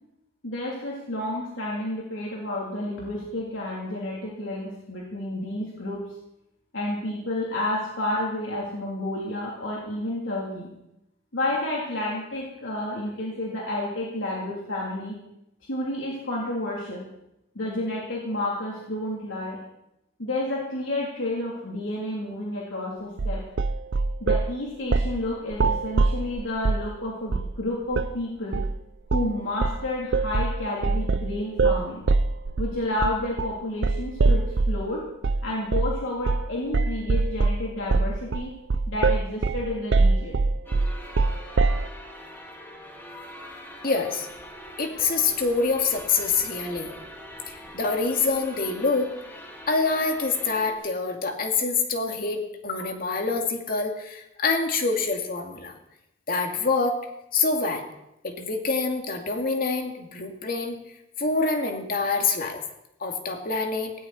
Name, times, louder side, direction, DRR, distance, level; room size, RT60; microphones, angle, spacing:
voice 1, 0.4-6.0 6.7-10.7 11.3-15.2 15.7-17.0 17.6-19.6 20.2-23.4 24.2-28.6 29.1-32.0 32.6-35.0 35.4-38.5 38.9-40.4, left 1 dB, 80° left, -4 dB, 3.6 m, -30 dB
sound 1, 23.2-24.5 24.9-25.2 25.5-26.9 27.3-27.6 27.9-28.1 28.5-28.8 29.1-29.4 29.6-34.8 35.2-35.4 35.7-36.0 36.3-36.5 36.7-41.9, right 3 dB, 65° right, 0.5 m, -23 dB
sound 2, 40.7-50.7, equal, 10° left, 2.8 m, -43 dB
voice 2, 43.8-44.3 44.8-46.9 47.5-49.1 49.7-55.7 56.3-57.0 57.3-57.9 58.2-60.8 61.2-62.6 63.0-63.9, left 4 dB, 50° left, 3 dB, 2.4 m, -26 dB
18.0 x 17.5 x 4.4 m, 0.84 s
head